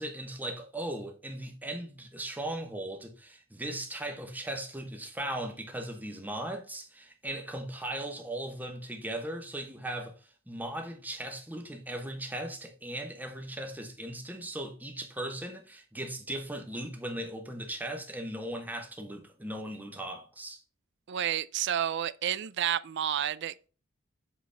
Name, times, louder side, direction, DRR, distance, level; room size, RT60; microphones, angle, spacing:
voice 1, 0.0-20.6, right 1 dB, 10° right, 1.0 m, -38 dB
voice 2, 21.1-23.7, right 10 dB, 55° right, 0.4 m, -30 dB
7.5 x 4.1 x 3.3 m
head